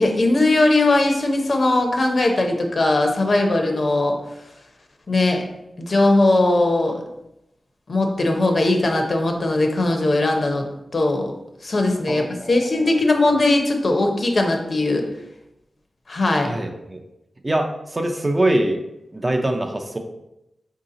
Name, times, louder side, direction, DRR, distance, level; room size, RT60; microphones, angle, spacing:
voice 1, 0.0-4.1 5.1-5.4 5.8-7.0 7.9-10.7 10.9-11.3 11.6-15.1 16.1-16.5, left 2 dB, 50° left, 3 dB, 0.7 m, -19 dB
voice 2, 12.1-13.2 16.4-17.0 17.4-18.8 19.1-20.0, right 1 dB, 25° right, 4 dB, 0.4 m, -24 dB
4.7 x 2.8 x 3.7 m, 0.89 s
wide cardioid pair, 110°, 0 cm